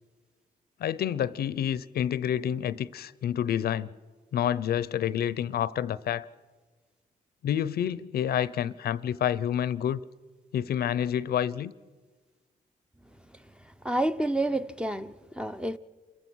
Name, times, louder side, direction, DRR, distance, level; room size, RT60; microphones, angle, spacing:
voice 1, 0.8-3.9 4.3-6.3 7.4-10.0 10.5-11.7, left 10 dB, 75° left, 0.6 m, -28 dB
voice 2, 13.8-15.8, right 1 dB, 5° right, 0.6 m, -29 dB
28.5 x 15.5 x 6.2 m
cardioid pair, 105°, 16 cm